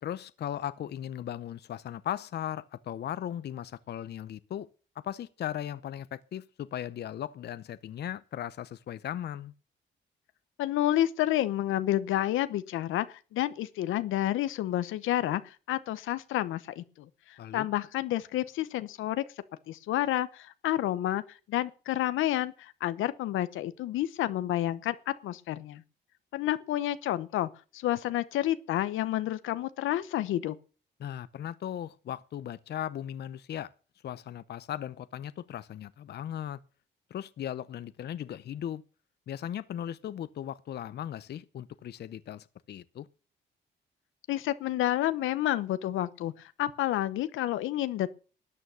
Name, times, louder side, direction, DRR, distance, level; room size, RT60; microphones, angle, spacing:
voice 1, 0.0-4.7 5.0-9.5 17.4-17.7 31.0-33.7 34.0-36.6 37.1-38.8 39.3-43.1, left 10 dB, 55° left, 0.7 m, -37 dB
voice 2, 10.6-17.1 17.5-19.2 19.7-21.2 21.5-25.8 26.3-30.6 44.3-46.3 46.6-48.2, left 13 dB, 85° left, 0.9 m, -30 dB
13.0 x 8.8 x 6.9 m
cardioid pair, 90°, 20 cm